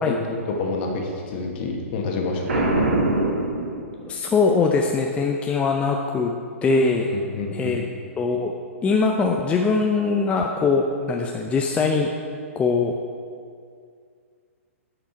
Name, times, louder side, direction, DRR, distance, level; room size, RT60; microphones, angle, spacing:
voice 1, 0.1-2.7 7.1-7.8, left 3 dB, 50° left, 1 dB, 1.4 m, -28 dB
Boom, 2.5-4.3, right 2 dB, 75° right, 1.5 m, -23 dB
voice 2, 4.1-6.3 6.6-7.1 7.5-7.8 8.2-8.5 8.8-12.1 12.6-12.9, left 4 dB, 15° left, 1 dB, 0.5 m, -21 dB
9.1 x 5.1 x 4.4 m, 2.2 s
hypercardioid pair, 125°, 8 cm